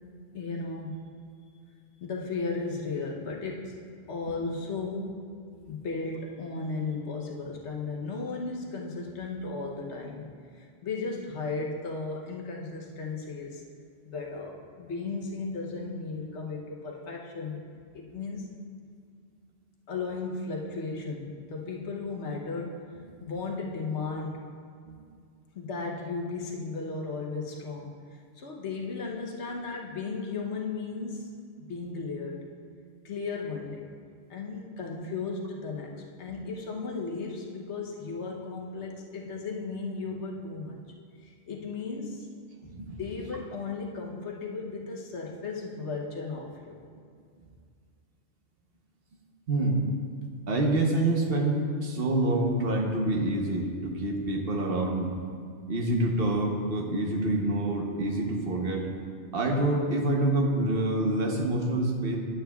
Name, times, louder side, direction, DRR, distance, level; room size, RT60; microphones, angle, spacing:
voice 1, 0.3-1.1 2.0-3.8 4.1-5.3 5.7-10.2 10.5-13.6 14.0-17.6 17.9-18.5 19.9-22.8 23.2-24.5 25.5-27.9 28.4-31.4 31.7-32.5 33.0-33.9 34.3-40.8 41.2-42.3 43.0-46.8, left 4 dB, 75° left, 0 dB, 1.2 m, -35 dB
voice 2, 42.7-43.0 49.5-49.8 50.5-55.1 55.7-58.9 59.3-62.2, right 1 dB, 55° right, 1 dB, 1.1 m, -27 dB
10.0 x 8.4 x 2.3 m, 2.2 s
omnidirectional pair, 1.2 m